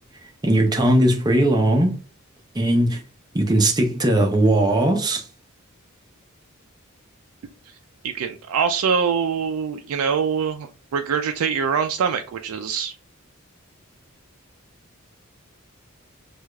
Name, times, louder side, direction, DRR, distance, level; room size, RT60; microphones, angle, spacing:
voice 1, 0.4-2.0 2.5-3.0 3.3-5.2, right 1 dB, 20° right, 0.6 m, -19 dB
voice 2, 8.0-12.9, right 6 dB, 85° right, 0.3 m, -24 dB
4.6 x 2.4 x 2.2 m
head